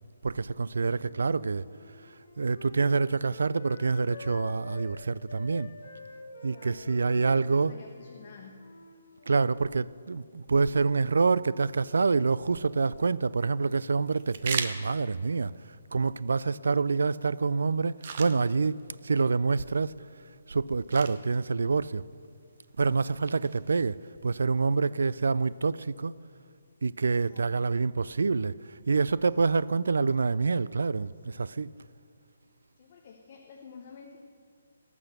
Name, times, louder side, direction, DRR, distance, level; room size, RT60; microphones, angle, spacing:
voice 1, 0.2-1.6 2.4-5.7 6.4-7.8 9.3-15.5 15.9-20.0 20.5-22.0 22.8-26.1 26.8-31.7, right 4 dB, 75° right, 0.3 m, -27 dB
Wind instrument woodwind instrument, 1.5-4.9 5.3-9.7, left 3 dB, 45° left, 1.9 m, -47 dB
voice 2, 6.5-8.5 27.2-27.9 32.8-34.3, left 5 dB, 25° left, 0.7 m, -51 dB
sound 1, 12.6-25.6, right 6 dB, 30° right, 0.6 m, -43 dB
18.0 x 6.1 x 6.6 m
hypercardioid pair, 180°, 0 cm